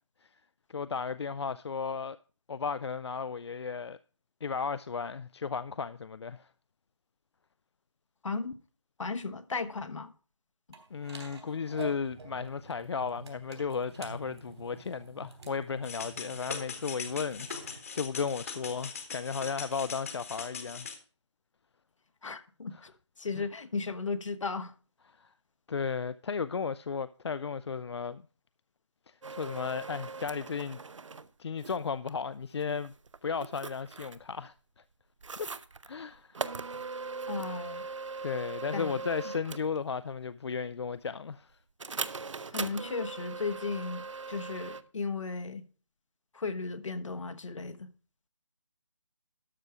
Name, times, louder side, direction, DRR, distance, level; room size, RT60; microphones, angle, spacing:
voice 1, 0.7-2.2 2.5-4.0 4.4-6.5 10.9-20.9 22.7-22.9 23.4-23.5 25.2-25.3 25.7-28.2 29.1-30.8 31.4-32.9 33.2-34.5 35.4-35.5 35.9-36.4 38.2-41.5, left 5 dB, 60° left, 0.4 m, -35 dB
voice 2, 8.2-8.5 9.0-10.1 22.2-22.9 23.2-24.7 37.3-37.9 38.7-39.0 42.5-45.6 46.3-47.9, left 4 dB, 80° left, 1.1 m, -35 dB
sound 1, 10.7-17.8, right 4 dB, 65° right, 3.2 m, -48 dB
sound 2, 15.8-21.0, left 6 dB, 30° left, 1.1 m, -41 dB
sound 3, 29.2-31.3 31.6-32.1 32.6-34.3 35.2-35.9 36.3-39.8 41.8-44.8, right 4 dB, 80° right, 0.8 m, -40 dB
12.5 x 6.2 x 4.7 m
figure-of-eight pair, 170°, 16 cm